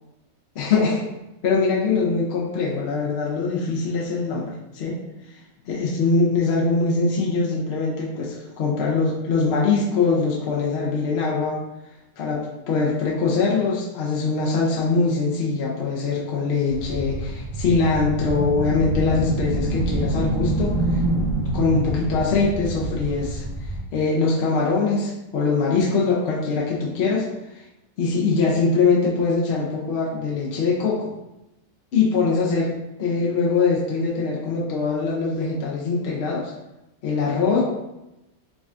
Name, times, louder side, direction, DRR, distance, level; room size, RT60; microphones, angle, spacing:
voice 1, 0.6-1.0 1.4-5.0 5.7-11.6 12.2-21.2 21.5-23.4 23.9-27.3 27.5-27.6 28.0-31.1 31.9-36.5 37.0-37.6, left 4 dB, 60° left, -3 dB, 0.7 m, -22 dB
sound 1, 16.7-23.8, right 2 dB, 45° right, 0.9 m, -26 dB
4.8 x 2.2 x 2.5 m, 0.94 s
omnidirectional pair, 1.4 m